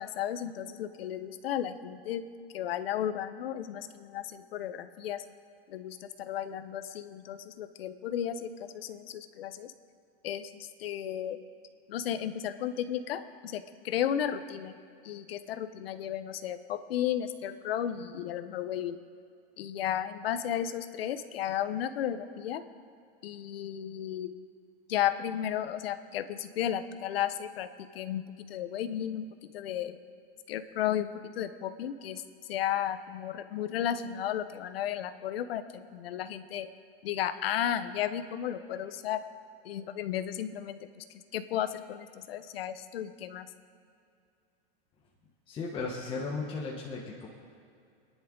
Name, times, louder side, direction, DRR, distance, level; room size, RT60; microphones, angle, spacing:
voice 1, 0.0-2.2 2.5-5.2 5.7-9.7 10.2-11.4 11.9-14.7 15.0-19.0 19.6-22.6 23.2-24.3 24.9-27.7 27.9-29.3 29.5-30.0 30.5-32.2 32.5-36.7 37.0-39.2 39.6-41.0 41.3-43.5, left 10 dB, 75° left, 10 dB, 1.0 m, -34 dB
voice 2, 45.5-47.3, left 4 dB, 15° left, -3 dB, 1.2 m, -35 dB
27.5 x 10.5 x 3.9 m, 2.4 s
supercardioid pair, 165°, 30 cm